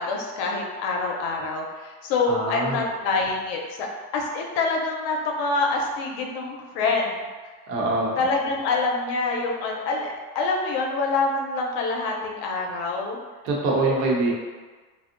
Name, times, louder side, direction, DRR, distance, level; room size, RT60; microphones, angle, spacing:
voice 1, 0.0-3.9 4.1-7.1 8.2-13.2, left 3 dB, 60° left, 0 dB, 0.6 m, -26 dB
voice 2, 2.2-2.8 7.7-8.2 13.4-14.3, right 2 dB, 75° right, -2 dB, 0.7 m, -24 dB
2.6 x 2.0 x 2.4 m, 1.4 s
cardioid pair, 130°, 41 cm